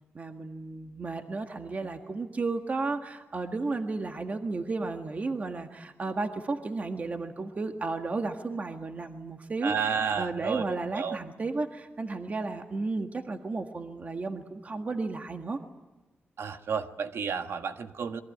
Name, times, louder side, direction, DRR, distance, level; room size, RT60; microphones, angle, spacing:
voice 1, 0.1-9.7 10.1-15.6, right 3 dB, 35° right, 5 dB, 1.6 m, -33 dB
voice 2, 9.6-10.7 10.9-11.2 16.4-18.2, right 6 dB, 85° right, 6 dB, 1.6 m, -31 dB
28.0 x 22.5 x 9.3 m, 1.2 s
wide cardioid pair, 130°, 4 cm